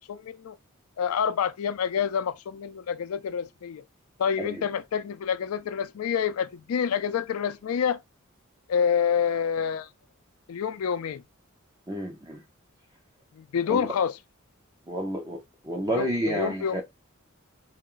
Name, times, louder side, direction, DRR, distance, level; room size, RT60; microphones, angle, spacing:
voice 1, 0.1-0.5 1.0-3.8 4.2-8.0 8.7-9.9 10.5-11.2 13.4-14.1 16.0-16.8, left 7 dB, 85° left, 0.4 m, -27 dB
voice 2, 11.9-12.4 13.7-13.9 14.9-15.4 15.6-16.8, equal, 15° right, 0.5 m, -30 dB
2.5 x 2.1 x 3.7 m
head